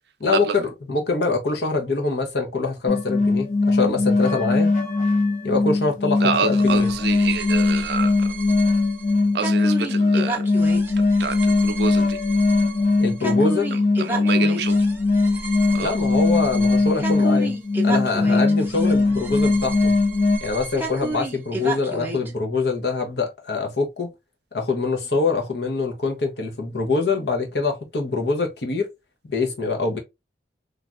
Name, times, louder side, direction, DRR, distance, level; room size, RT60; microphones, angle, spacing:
voice 1, 0.2-4.7 5.4-7.0 13.0-13.7 15.8-17.6 17.8-20.0 20.4-24.1 24.5-28.9 29.3-30.0, left 3 dB, 70° left, 0.8 m, -24 dB
sound 1, 2.9-20.4, left 3 dB, 45° left, 0.7 m, -20 dB
voice 2, 6.2-8.1 9.3-10.4 11.2-12.2 14.0-14.8 15.7-15.9, right 6 dB, 70° right, 0.5 m, -27 dB
sound 2, 6.6-22.3, right 2 dB, 10° right, 0.5 m, -33 dB
3.3 x 2.4 x 2.4 m
head